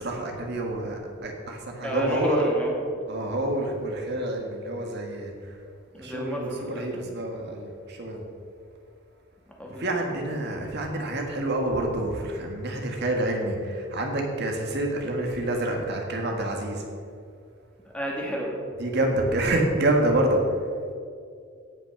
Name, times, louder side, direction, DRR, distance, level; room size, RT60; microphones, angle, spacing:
voice 1, 0.0-2.5 3.0-5.6 5.9-8.2 9.6-16.8 18.8-20.6, right 1 dB, 55° right, 1 dB, 1.7 m, -27 dB
voice 2, 1.8-2.8 5.9-7.0 9.6-9.8 17.8-18.6, equal, 5° left, -2 dB, 2.1 m, -30 dB
16.5 x 6.1 x 6.0 m, 2.3 s
head